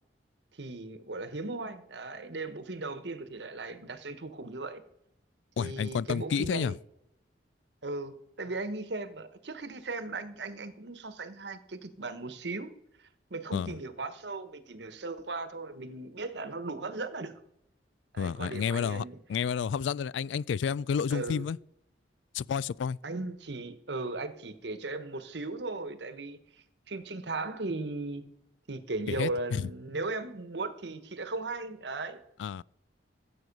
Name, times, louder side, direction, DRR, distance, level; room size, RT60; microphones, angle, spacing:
voice 1, 0.5-4.8 5.6-6.8 7.8-12.7 13.3-17.4 18.1-19.2 21.1-21.5 23.0-26.4 26.9-28.2 28.7-32.2, right 3 dB, 70° right, 1.1 m, -37 dB
voice 2, 5.6-6.7 13.5-13.7 18.2-19.0 19.3-21.6 22.3-23.0 29.1-29.7 32.4-32.6, left 6 dB, 90° left, 0.3 m, -30 dB
14.5 x 7.9 x 5.3 m
head